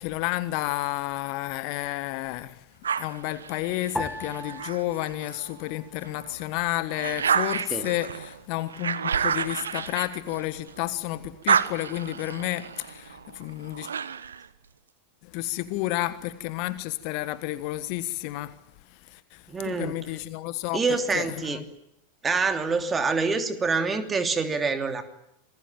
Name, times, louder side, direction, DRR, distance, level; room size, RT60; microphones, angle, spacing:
voice 1, 0.0-2.6 3.0-13.9 15.2-18.5 19.1-20.8 21.1-21.6, left 17 dB, 45° left, 1.3 m, -31 dB
sound 1, 2.8-5.5 6.0-10.9 11.2-14.5, right 7 dB, 70° right, 1.2 m, -30 dB
sound 2, 4.0-6.5 6.7-7.6 8.3-8.7, left 1 dB, 5° left, 2.0 m, -39 dB
voice 2, 19.5-19.9 20.7-21.6 22.2-25.0, right 4 dB, 15° right, 3.0 m, -26 dB
27.0 x 20.5 x 8.9 m
figure-of-eight pair, 90°, 0 cm